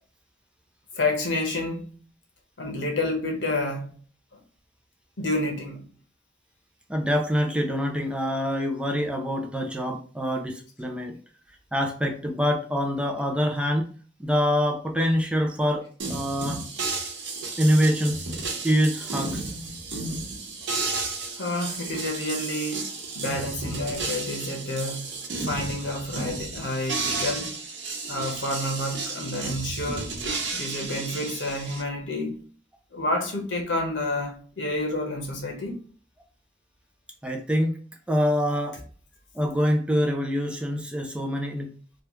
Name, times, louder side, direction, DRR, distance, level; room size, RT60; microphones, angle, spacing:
voice 1, 0.9-1.9 2.6-4.0 5.2-5.9 21.4-25.1 25.4-27.6 28.1-30.1 30.5-32.4 32.9-35.8, left 1 dB, 90° left, 1.0 m, -29 dB
voice 2, 6.9-11.2 11.7-13.9 14.2-16.7 17.6-18.2 18.6-19.4 37.2-37.8 38.1-38.8 39.3-41.8, equal, 5° right, 0.4 m, -25 dB
sound 1, 16.0-31.8, right 3 dB, 85° right, 0.8 m, -33 dB
3.1 x 2.4 x 3.0 m
head